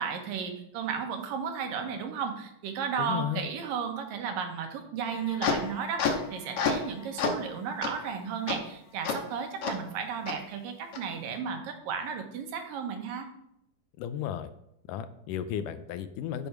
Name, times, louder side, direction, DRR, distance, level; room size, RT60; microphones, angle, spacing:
voice 1, 0.0-13.3, right 6 dB, 90° right, 4 dB, 2.9 m, -34 dB
voice 2, 3.0-3.5 14.0-14.5 14.9-16.5, left 10 dB, 80° left, 11 dB, 2.1 m, -34 dB
sound 1, 5.0-6.9 7.2-7.4 7.8-7.9 8.5-8.6 9.0-9.2 9.6-9.7 10.3-10.4 10.9-11.0, left 5 dB, 60° left, 1.7 m, -30 dB
9.2 x 6.9 x 5.2 m, 0.76 s
omnidirectional pair, 3.9 m